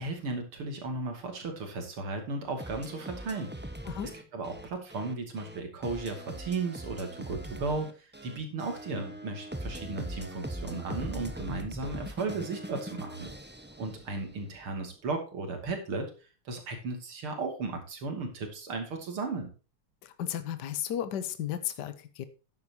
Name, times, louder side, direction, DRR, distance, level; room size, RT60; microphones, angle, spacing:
voice 1, 0.0-3.7 4.3-13.3 13.8-16.1 16.5-19.5, right 3 dB, 85° right, 4 dB, 3.5 m, -35 dB
sound 1, 2.6-14.5, right 1 dB, 5° right, 0.8 m, -41 dB
voice 2, 20.0-22.2, left 10 dB, 60° left, 11 dB, 1.6 m, -34 dB
12.5 x 9.7 x 2.9 m, 0.34 s
omnidirectional pair, 2.3 m